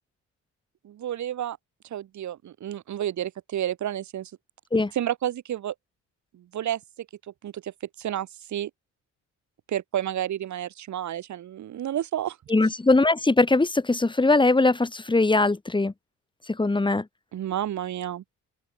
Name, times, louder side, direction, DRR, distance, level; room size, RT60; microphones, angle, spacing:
voice 1, 0.8-1.6 1.9-4.3 4.9-5.7 6.3-6.8 7.4-8.7 9.7-12.7 17.3-18.2, right 11 dB, 70° right, 4.7 m, -31 dB
voice 2, 12.5-15.9 16.6-17.0, left 2 dB, 15° left, 2.2 m, -21 dB
open air
cardioid pair, 90°, 30 cm